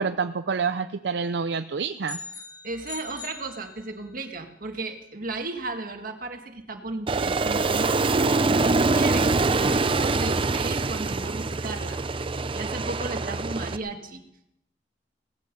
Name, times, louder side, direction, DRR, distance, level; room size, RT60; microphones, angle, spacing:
voice 1, 0.0-2.2, right 5 dB, 70° right, 10 dB, 0.6 m, -27 dB
sound 1, 2.1-4.2, left 4 dB, 20° left, 1.8 m, -41 dB
voice 2, 2.6-14.2, right 2 dB, 50° right, 5 dB, 1.9 m, -35 dB
Aircraft, 7.1-13.8, right 3 dB, 30° right, 0.6 m, -24 dB
18.0 x 15.0 x 5.4 m, 0.78 s
head